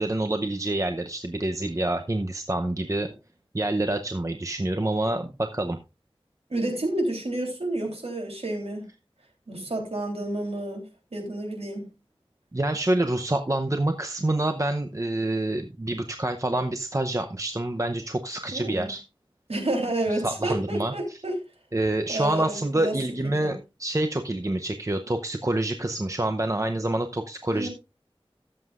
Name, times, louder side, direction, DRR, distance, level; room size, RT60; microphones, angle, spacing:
voice 1, 0.0-3.1 3.5-5.8 12.5-19.0 20.1-21.2 21.7-27.7, right 1 dB, 30° right, 6 dB, 0.7 m, -27 dB
voice 2, 6.5-8.9 9.5-11.9 18.5-18.9 19.5-21.3 22.1-23.0 23.2-23.5 27.5-27.7, right 1 dB, 85° right, 1 dB, 3.5 m, -30 dB
16.0 x 7.8 x 2.5 m, 0.28 s
wide cardioid pair, 45°, 10 cm